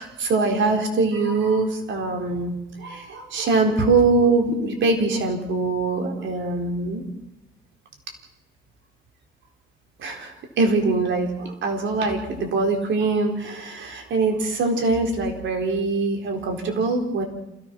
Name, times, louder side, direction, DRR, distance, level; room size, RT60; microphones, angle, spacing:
voice 1, 0.0-7.0 10.0-17.2, right 3 dB, 70° right, 3 dB, 4.3 m, -23 dB
27.0 x 17.0 x 6.2 m, 0.90 s
cardioid pair, 90°, 20 cm